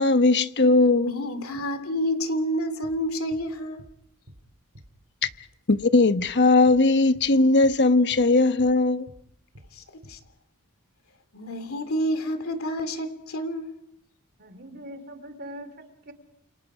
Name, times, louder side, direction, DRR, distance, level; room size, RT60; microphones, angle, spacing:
voice 1, 0.0-1.1 5.2-5.3 5.7-9.1, left 3 dB, 55° left, 1.1 m, -19 dB
voice 2, 1.0-3.8 9.7-10.2 11.3-13.7, equal, 70° left, 2.9 m, -29 dB
sound 1, 2.8-3.0 3.3-3.5 3.8-3.9 4.3-4.4 4.7-4.9 5.2-5.4 5.7-5.9 6.2-6.3 6.7-6.8 7.1-7.3 7.6-7.8 8.1-8.3 8.6-8.7 9.1-9.2 9.5-9.7 10.0-10.2, equal, 80° right, 3.5 m, -49 dB
voice 3, 14.4-16.1, equal, 50° right, 2.8 m, -42 dB
30.0 x 28.0 x 5.0 m
head